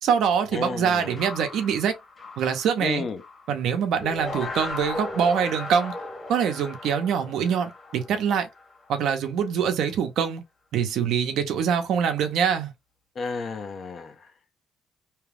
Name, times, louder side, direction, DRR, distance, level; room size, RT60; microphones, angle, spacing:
voice 1, 0.0-1.9 2.4-3.0 3.5-5.9 6.3-8.5 8.9-10.4 10.7-12.7, right 7 dB, 80° right, 0.7 m, -24 dB
voice 2, 0.5-1.2 2.8-3.2 13.1-14.3, left 4 dB, 50° left, 0.7 m, -32 dB
sound 1, 0.9-3.6 4.0-9.1, left 3 dB, 30° left, 1.3 m, -37 dB
2.9 x 2.3 x 3.3 m
cardioid pair, 90°, 0 cm